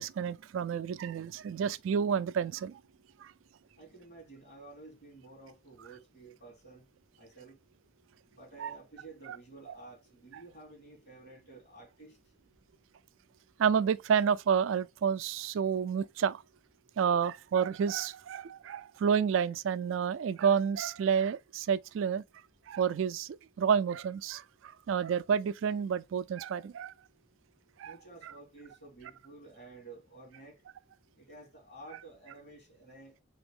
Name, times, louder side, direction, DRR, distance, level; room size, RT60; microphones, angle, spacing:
voice 1, 0.0-2.8 3.2-3.3 8.6-8.7 9.7-9.8 13.6-16.4 17.0-22.2 22.7-26.9 27.8-28.0 28.2-28.3, right 7 dB, 80° right, 0.3 m, -30 dB
voice 2, 3.8-6.8 7.2-7.6 8.3-12.2 27.8-30.6 31.2-33.2, right 2 dB, 55° left, 2.5 m, -52 dB
3.9 x 3.5 x 3.4 m
head